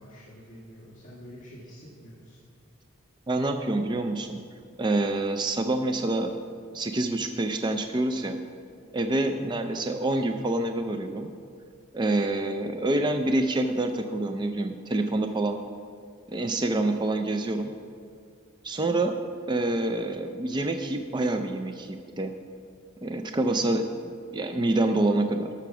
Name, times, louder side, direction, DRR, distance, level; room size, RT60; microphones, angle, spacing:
voice 1, 0.0-2.4 9.4-9.7, equal, 35° left, -8 dB, 2.0 m, -47 dB
voice 2, 3.3-4.4 4.8-6.3 6.7-8.4 8.9-11.3 11.9-15.6 16.3-17.7 18.6-19.2 19.5-22.3 23.0-25.5, right 2 dB, 20° right, 6 dB, 0.4 m, -27 dB
13.0 x 5.9 x 6.0 m, 2.3 s
head